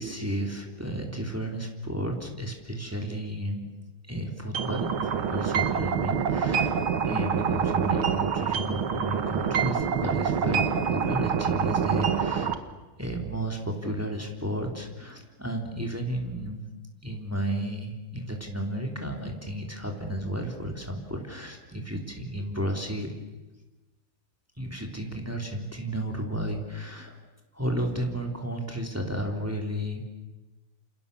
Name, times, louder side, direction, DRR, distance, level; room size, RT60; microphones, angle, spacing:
voice 1, 0.0-3.6 4.1-6.7 7.0-12.5 13.0-16.7 17.0-23.2 24.6-27.2 27.5-30.1, right 1 dB, 5° right, 2 dB, 3.4 m, -33 dB
sound 1, 4.5-12.5, right 7 dB, 80° right, 2.3 m, -26 dB
28.5 x 28.0 x 7.0 m, 1.1 s
omnidirectional pair, 2.2 m